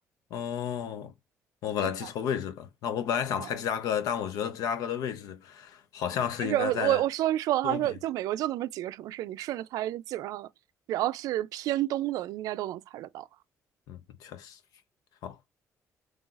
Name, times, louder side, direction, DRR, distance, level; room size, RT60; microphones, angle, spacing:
voice 1, 0.3-1.1 1.6-7.0 7.6-7.9 13.9-14.6 15.2-15.4, left 8 dB, 85° left, 0.7 m, -32 dB
voice 2, 6.4-10.5 10.9-13.3, right 14 dB, 80° right, 0.3 m, -30 dB
3.8 x 3.3 x 2.4 m
cardioid pair, 105°, 6 cm